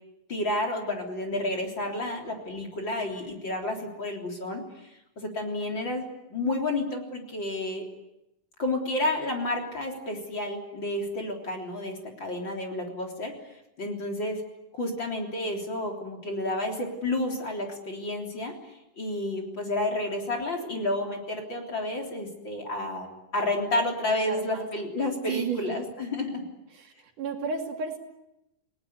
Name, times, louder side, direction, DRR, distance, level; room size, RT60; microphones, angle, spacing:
voice 1, 0.3-7.9 8.6-13.3 13.8-14.4 14.7-18.5 19.0-23.1 23.3-26.4, left 1 dB, 35° left, 1 dB, 4.1 m, -30 dB
voice 2, 24.0-24.7 25.3-25.9 26.7-28.0, right 5 dB, 65° right, 3 dB, 4.2 m, -33 dB
30.0 x 19.0 x 9.5 m, 0.88 s
omnidirectional pair, 3.8 m